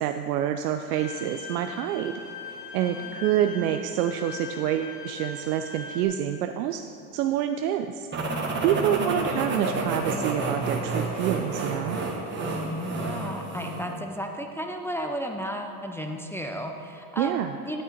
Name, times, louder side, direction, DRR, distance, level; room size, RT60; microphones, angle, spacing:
voice 1, 0.0-2.2 2.7-6.8 7.1-8.1 8.6-12.0 17.2-17.5, right 10 dB, 75° right, 6 dB, 0.6 m, -27 dB
Bowed string instrument, 0.9-6.0, left 4 dB, 80° left, 1.3 m, -40 dB
voice 2, 2.8-3.2 12.4-17.8, equal, 5° left, 2 dB, 0.4 m, -34 dB
sound 1, 8.1-13.9, right 3 dB, 25° right, 1.5 m, -30 dB
9.8 x 8.3 x 4.5 m, 2.6 s
supercardioid pair, 100°, 47 cm